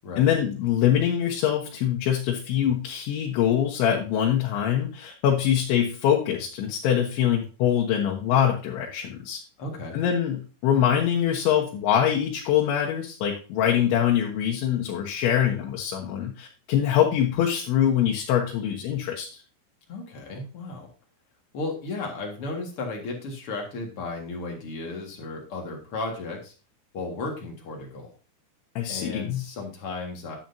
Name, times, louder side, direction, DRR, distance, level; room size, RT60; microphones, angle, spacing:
voice 1, 0.2-9.4 9.9-19.4 28.8-29.4, left 10 dB, 75° left, -1 dB, 3.6 m, -24 dB
voice 2, 9.6-10.0 19.9-20.9 21.5-26.5 26.9-28.1 28.9-30.4, left 3 dB, 60° left, 1 dB, 1.5 m, -34 dB
10.0 x 9.0 x 2.7 m, 0.36 s
omnidirectional pair, 5.5 m